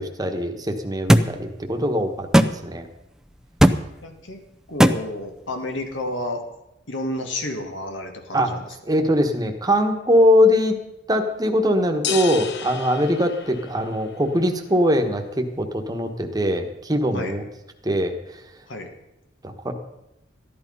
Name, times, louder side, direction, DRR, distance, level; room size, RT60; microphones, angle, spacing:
voice 1, 0.0-2.3 2.6-2.9 8.3-8.5 8.9-10.8 11.1-17.4 17.8-18.4 19.4-19.7, equal, 20° right, 4 dB, 1.3 m, -21 dB
sound 1, 1.1-1.3 2.3-2.5 3.6-3.8 4.8-5.0, equal, 5° right, 0.5 m, -13 dB
voice 2, 4.0-4.4 4.7-6.4 6.9-8.6 17.1-17.4 18.7-18.9, left 1 dB, 85° left, 4 dB, 2.0 m, -31 dB
sound 2, 12.0-14.1, left 5 dB, 65° left, 0.9 m, -30 dB
14.0 x 11.0 x 5.5 m, 0.88 s
head